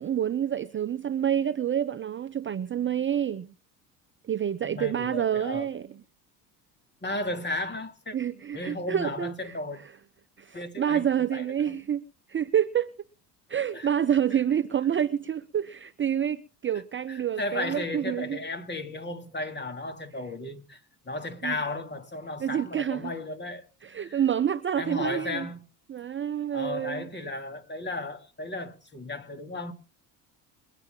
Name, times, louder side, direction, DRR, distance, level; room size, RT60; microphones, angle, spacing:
voice 1, 0.0-3.5 4.2-5.9 8.1-9.6 10.4-12.0 12.3-12.9 13.5-18.4 21.4-21.5 22.4-23.1 23.8-25.5 25.9-27.1, right 9 dB, 25° right, 0.6 m, -28 dB
voice 2, 4.6-5.7 7.0-8.2 8.5-9.8 10.5-11.5 13.7-13.9 17.1-23.7 24.0-24.2 24.8-25.6 26.5-29.7, left 2 dB, 25° left, 2.7 m, -35 dB
22.5 x 9.1 x 3.8 m
hypercardioid pair, 70°, 46 cm